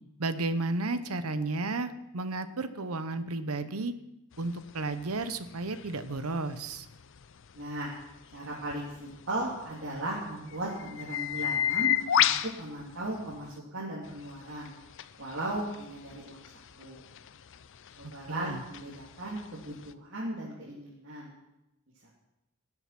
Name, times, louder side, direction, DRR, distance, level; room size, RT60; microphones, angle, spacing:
voice 1, 0.2-3.9 4.4-6.9 18.3-18.6, right 2 dB, 85° right, 11 dB, 1.0 m, -33 dB
sound 1, 4.3-13.6 14.0-19.9, left 10 dB, 60° left, 0.6 m, -34 dB
voice 2, 7.5-7.9 8.3-14.7 15.2-16.4 16.8-17.0 18.0-21.3 22.0-22.1, right 1 dB, 60° right, -6 dB, 3.2 m, -37 dB
19.5 x 7.9 x 6.0 m, 0.90 s
head